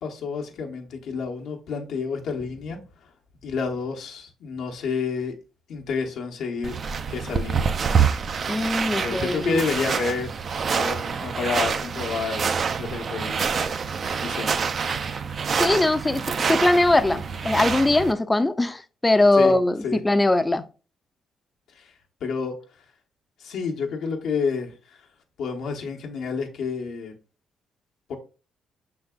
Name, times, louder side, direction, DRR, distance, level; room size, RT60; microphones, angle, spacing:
voice 1, 0.0-3.1 3.4-5.3 5.7-6.8 7.1-7.7 8.9-10.3 10.7-12.5 12.8-13.4 14.2-14.6 19.3-19.5 19.8-20.0 21.7-21.9 22.2-22.6 23.4-25.0 25.4-27.1 28.1-28.2, left 5 dB, 75° left, 0.9 m, -29 dB
sound 1, 6.6-18.1, right 6 dB, 45° right, 0.4 m, -26 dB
voice 2, 8.5-9.6 15.6-16.2 16.5-20.6, left 2 dB, 15° left, 0.4 m, -21 dB
5.7 x 3.9 x 2.3 m
cardioid pair, 90°, 0 cm